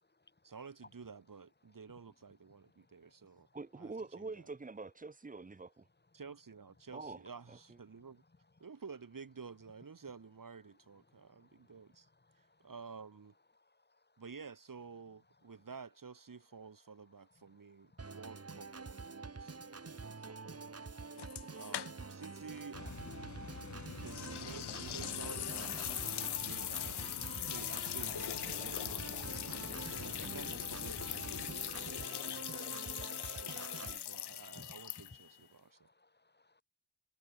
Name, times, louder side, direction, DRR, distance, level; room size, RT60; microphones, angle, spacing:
voice 1, 0.4-3.5 3.8-4.5 6.1-8.2 8.6-12.1 12.3-13.3 14.2-20.9 21.5-23.2 24.0-32.8 33.4-35.9, right 5 dB, 55° right, 5.5 m, -52 dB
voice 2, 3.5-5.9 6.9-7.2 7.5-7.6, right 3 dB, 20° right, 0.9 m, -45 dB
Organ, 18.0-34.0, right 4 dB, 40° right, 4.3 m, -47 dB
sound 1, 21.2-22.3 22.6-22.7 24.1-35.4, left 11 dB, 85° left, 0.6 m, -41 dB
sound 2, 22.7-31.5, left 5 dB, 45° left, 1.7 m, -50 dB
voice 3, 23.3-23.6 24.0-24.1 29.5-29.7 33.0-33.3 34.5-34.7 35.7-36.6, left 3 dB, 25° left, 3.4 m, -62 dB
wide cardioid pair, 155°, 39 cm